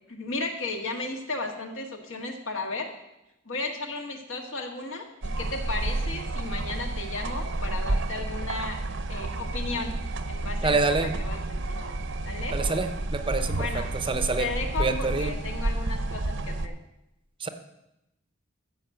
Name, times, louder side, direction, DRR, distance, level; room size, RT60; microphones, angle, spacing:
voice 1, 0.1-2.9 3.5-8.8 9.1-9.9 10.3-11.9 12.2-12.6 13.6-13.9 14.4-16.7, left 3 dB, 70° left, 3 dB, 1.8 m, -34 dB
sound 1, 5.2-16.7, right 2 dB, 60° right, 0.8 m, -30 dB
voice 2, 10.6-11.2 12.5-13.7 14.1-14.5 14.8-15.3 17.4-17.5, right 3 dB, 25° right, 9 dB, 0.7 m, -26 dB
13.5 x 5.3 x 7.8 m, 0.90 s
head